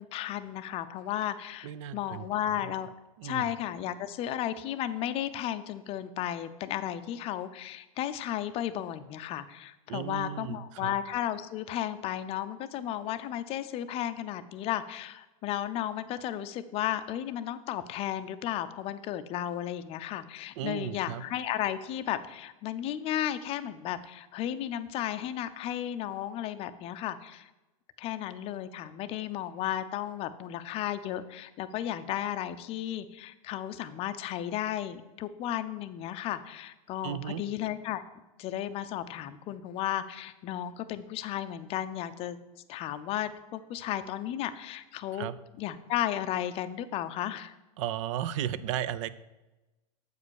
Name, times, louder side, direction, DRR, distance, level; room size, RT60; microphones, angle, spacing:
voice 1, 0.0-2.9 3.2-27.5 28.0-38.0 38.4-42.4 42.7-45.3 45.6-47.5, left 11 dB, 30° left, 12 dB, 0.5 m, -34 dB
voice 2, 1.6-2.2 2.5-2.7 3.2-3.5 9.9-11.0 20.6-21.2 37.0-37.4 45.1-45.3 47.8-49.1, right 11 dB, 55° right, 15 dB, 0.5 m, -35 dB
8.0 x 5.0 x 6.4 m, 1.0 s
supercardioid pair, 135°, 20 cm